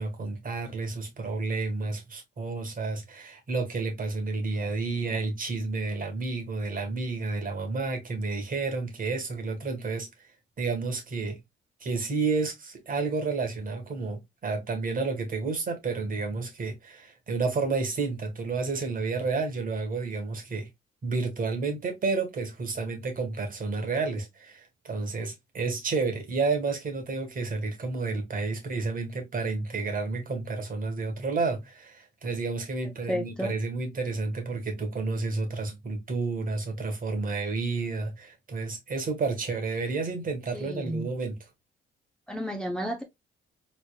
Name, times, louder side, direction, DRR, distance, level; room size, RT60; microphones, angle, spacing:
voice 1, 0.0-10.1 10.6-11.4 11.8-20.7 21.0-41.3, right 3 dB, 45° right, 1.5 m, -30 dB
voice 2, 33.1-33.5 40.5-41.1 42.3-43.0, equal, 5° left, 0.7 m, -32 dB
3.9 x 3.3 x 2.2 m
cardioid pair, 90°, 20 cm